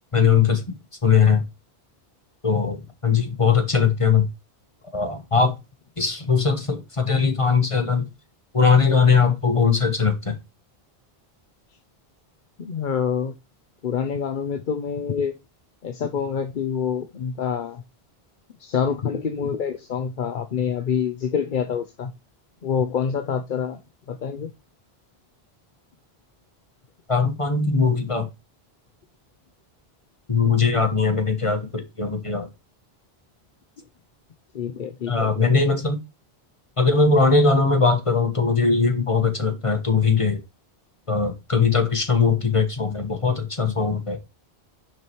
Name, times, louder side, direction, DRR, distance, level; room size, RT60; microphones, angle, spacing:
voice 1, 0.1-0.8 1.0-1.4 2.4-4.3 4.9-5.6 6.0-8.1 8.5-10.3 27.1-28.3 30.3-32.5 35.1-36.0 36.8-40.4 41.1-44.2, left 5 dB, 30° left, 1.1 m, -20 dB
voice 2, 12.6-13.3 13.8-15.3 15.8-17.8 18.6-22.1 22.6-23.8 24.1-24.5 34.5-35.3, left 7 dB, 55° left, 0.8 m, -26 dB
6.2 x 4.9 x 4.5 m
omnidirectional pair, 1.1 m